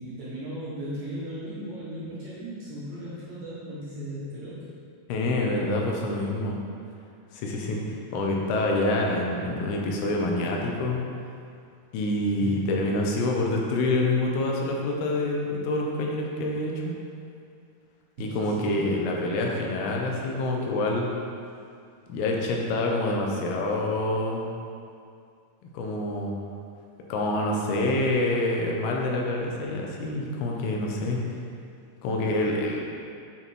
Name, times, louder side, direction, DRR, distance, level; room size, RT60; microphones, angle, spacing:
voice 1, 0.0-4.7 12.4-12.9 18.2-18.9, right 1 dB, 60° right, -9 dB, 2.1 m, -37 dB
voice 2, 5.1-6.6 7.3-7.8 8.1-11.0 11.9-16.9 18.2-21.1 22.1-24.5 25.7-26.3 27.1-31.2 32.0-32.8, left 2 dB, 80° left, 0 dB, 2.8 m, -26 dB
9.2 x 4.1 x 4.6 m, 2.3 s
omnidirectional pair, 4.5 m